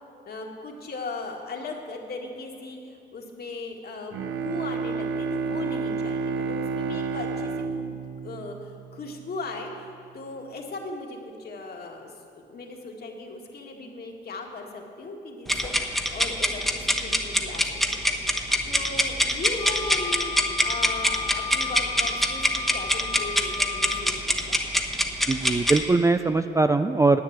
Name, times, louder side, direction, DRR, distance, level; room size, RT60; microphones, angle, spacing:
voice 1, 0.3-7.9 8.2-9.9 10.1-24.7, left 3 dB, 50° left, 1 dB, 1.9 m, -38 dB
Bowed string instrument, 4.1-9.1, right 4 dB, 80° right, 0.6 m, -30 dB
sound 1, 15.5-25.8, left 1 dB, ahead, 1.0 m, -24 dB
Wind instrument woodwind instrument, 19.6-24.1, left 6 dB, 20° left, 1.1 m, -35 dB
voice 2, 25.3-27.2, right 3 dB, 15° right, 9 dB, 0.4 m, -21 dB
10.5 x 8.6 x 8.1 m, 2.6 s
cardioid pair, 90°, 20 cm